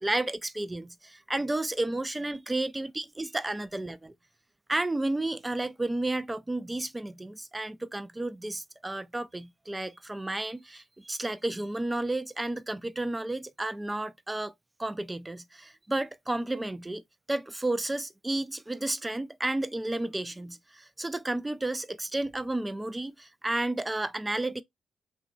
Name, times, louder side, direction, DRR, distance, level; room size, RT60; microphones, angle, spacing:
voice 1, 0.0-4.1 4.7-14.5 14.8-17.0 17.3-24.6, right 2 dB, 15° right, 0.4 m, -32 dB
3.7 x 2.9 x 2.4 m
supercardioid pair, 60°, 0 cm